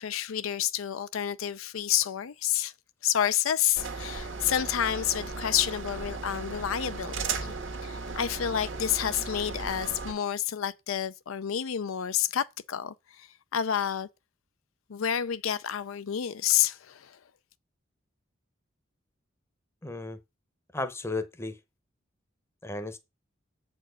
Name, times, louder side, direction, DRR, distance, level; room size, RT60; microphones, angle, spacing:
voice 1, 0.0-2.7 3.0-7.5 7.8-14.1 14.9-17.2, left 10 dB, 90° left, 0.5 m, -29 dB
sound 1, 3.8-10.1, right 4 dB, 70° right, 1.4 m, -36 dB
voice 2, 19.8-20.2 20.7-21.6 22.6-23.0, left 2 dB, 10° left, 0.7 m, -34 dB
7.4 x 4.4 x 6.2 m
head